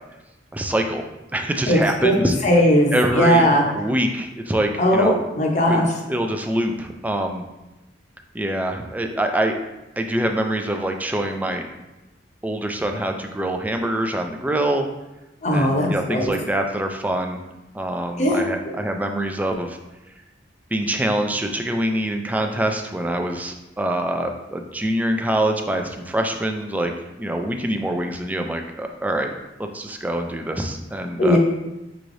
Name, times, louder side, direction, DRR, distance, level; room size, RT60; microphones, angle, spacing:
voice 1, 0.5-1.0 1.3-2.4 2.9-3.5 3.8-5.2 5.7-5.8 6.1-7.4 8.3-9.5 10.0-11.7 12.4-14.9 15.5-17.4 17.7-19.8 20.7-26.9 27.2-29.3 29.6-31.4, right 1 dB, 10° right, 4 dB, 0.3 m, -24 dB
voice 2, 1.7-2.1 2.4-3.6 4.8-5.9 15.4-16.3 18.2-18.7 31.2-31.4, equal, 40° left, -1 dB, 0.8 m, -18 dB
5.7 x 3.1 x 2.6 m, 1.0 s
head